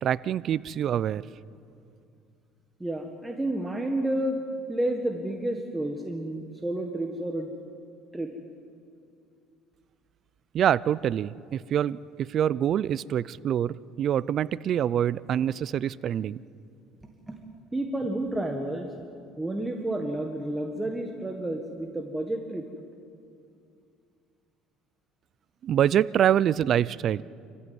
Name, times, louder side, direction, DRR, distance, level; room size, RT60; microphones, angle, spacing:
voice 1, 0.0-1.2 10.5-16.4 25.6-27.2, right 10 dB, 45° right, 19 dB, 0.5 m, -25 dB
voice 2, 2.8-4.4 4.7-7.5 8.1-8.3 17.3-17.4 17.7-18.9 19.4-22.6, right 1 dB, 10° right, 2 dB, 1.6 m, -30 dB
26.0 x 15.0 x 9.5 m, 2.5 s
cardioid pair, 130°, 0 cm